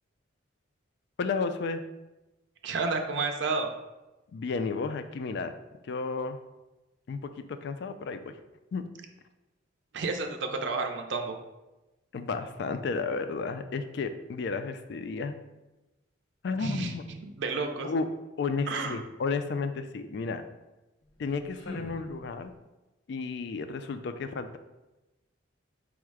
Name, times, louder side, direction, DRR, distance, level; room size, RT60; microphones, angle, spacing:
voice 1, 1.2-1.8 4.3-5.5 5.9-6.4 7.1-8.3 8.7-8.8 12.1-15.3 16.4-17.0 17.8-18.1 18.4-20.4 21.2-22.5 23.1-24.6, left 4 dB, 60° left, 9 dB, 0.3 m, -32 dB
voice 2, 2.6-3.7 9.9-11.4 16.6-17.9 18.7-19.0, right 4 dB, 65° right, 4 dB, 0.5 m, -31 dB
sound 1, 21.0-22.7, left 1 dB, 80° left, 0.7 m, -45 dB
4.6 x 2.1 x 4.7 m, 1.0 s
head